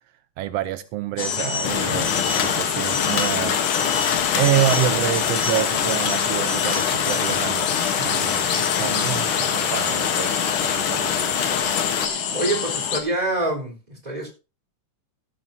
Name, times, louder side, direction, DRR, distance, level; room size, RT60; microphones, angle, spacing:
voice 1, 0.4-3.6 4.3-11.4, right 13 dB, 85° right, 1.4 m, -27 dB
sound 1, 1.2-13.0, left 7 dB, 80° left, 3.0 m, -27 dB
sound 2, 1.6-12.1, left 8 dB, 60° left, 1.4 m, -24 dB
voice 2, 12.3-14.3, right 2 dB, 10° right, 3.8 m, -26 dB
15.0 x 12.0 x 2.7 m
omnidirectional pair, 3.6 m